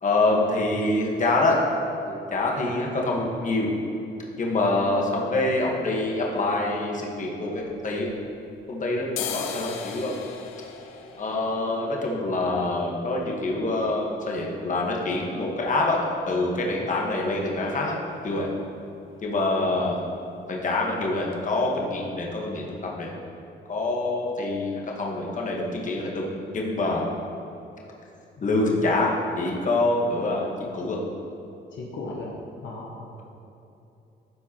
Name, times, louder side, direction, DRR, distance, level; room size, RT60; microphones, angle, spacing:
voice 1, 0.0-1.6 2.1-3.7 4.4-8.1 8.7-10.2 11.2-18.5 19.2-20.0 20.5-23.1 23.7-26.3 26.5-27.0 28.4-31.0, left 2 dB, 40° left, -2 dB, 1.3 m, -26 dB
sound 1, 7.6-8.6 9.0-16.7 17.0-17.1 17.4-17.9 18.2-18.5 18.7-19.0 19.2-20.0 20.3-20.5 20.9-21.0 21.3-21.4, left 8 dB, 90° left, 0.6 m, -40 dB
voice 2, 31.7-32.3 32.6-33.1, left 2 dB, 70° left, -2 dB, 1.0 m, -37 dB
12.5 x 4.5 x 2.9 m, 2.8 s
cardioid pair, 90°, 20 cm